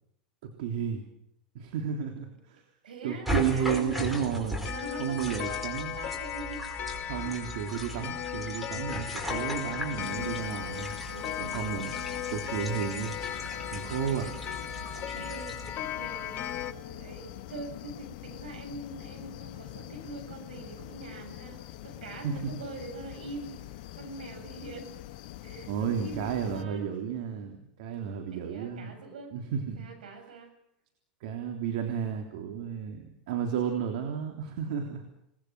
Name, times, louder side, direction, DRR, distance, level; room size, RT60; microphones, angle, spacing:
voice 1, 0.6-1.0 1.6-2.6 3.0-4.6 5.0-6.0 7.0-10.9 11.4-11.9 12.3-13.2 13.7-14.3 22.2-22.5 25.7-28.9 29.3-29.9 31.2-35.0, right 8 dB, 70° right, 3 dB, 3.5 m, -32 dB
voice 2, 2.8-4.2 4.7-6.7 7.0-7.3 9.2-10.4 11.1-12.3 14.1-23.6 23.9-25.0 25.4-26.9 28.3-29.3 29.8-30.5, right 2 dB, 90° right, 5 dB, 7.5 m, -44 dB
sound 1, 3.2-15.7, equal, ahead, 5.2 m, -38 dB
Clock, 4.6-16.7, left 11 dB, 45° left, 1.3 m, -37 dB
sound 2, 10.0-26.6, left 14 dB, 65° left, 1.5 m, -45 dB
28.5 x 20.0 x 6.3 m, 0.79 s
hypercardioid pair, 100°, 5 cm